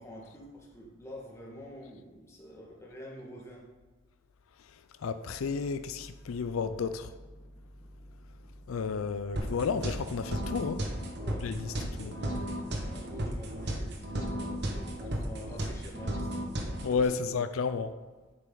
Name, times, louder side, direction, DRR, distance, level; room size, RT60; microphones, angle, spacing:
voice 1, 0.0-3.6 11.2-16.3 17.2-17.3, equal, 15° left, 1.8 m, -47 dB
voice 2, 5.0-7.1 8.7-10.8 11.4-11.5 12.0-12.1 16.8-17.9, left 5 dB, 85° left, 0.4 m, -31 dB
sound 1, 5.2-11.8, equal, 30° left, 1.2 m, -52 dB
sound 2, 9.4-17.0, right 1 dB, 55° right, 1.2 m, -35 dB
9.5 x 7.5 x 3.9 m
head